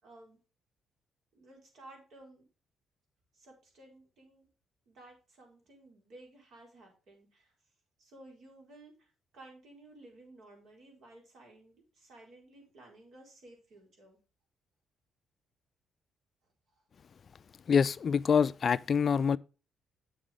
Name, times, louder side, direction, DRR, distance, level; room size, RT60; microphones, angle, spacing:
voice 1, 0.0-0.4 1.3-2.4 3.3-4.5 4.9-7.5 8.0-14.2, right 2 dB, 70° right, 4.5 m, -55 dB
voice 2, 17.7-19.4, left 6 dB, 50° left, 0.3 m, -26 dB
8.2 x 7.2 x 3.6 m
cardioid pair, 90°, 0 cm